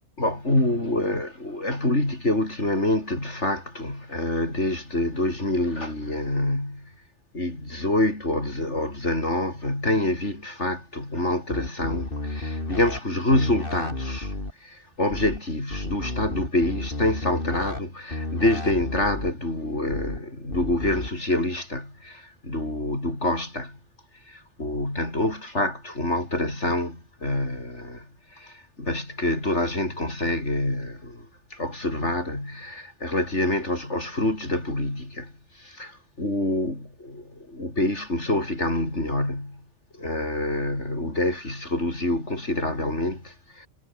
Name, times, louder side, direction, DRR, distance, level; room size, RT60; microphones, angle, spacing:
voice 1, 0.2-6.8 7.3-14.3 14.6-23.8 24.3-31.3 31.5-39.6 40.0-43.7, left 1 dB, 70° left, 7.5 m, -27 dB
sound 1, 11.5-13.0 13.3-14.5 15.1-15.4 15.7-17.8 18.1-19.3 19.9-20.2 20.5-21.1, left 2 dB, 50° left, 4.1 m, -32 dB
omnidirectional pair, 1.2 m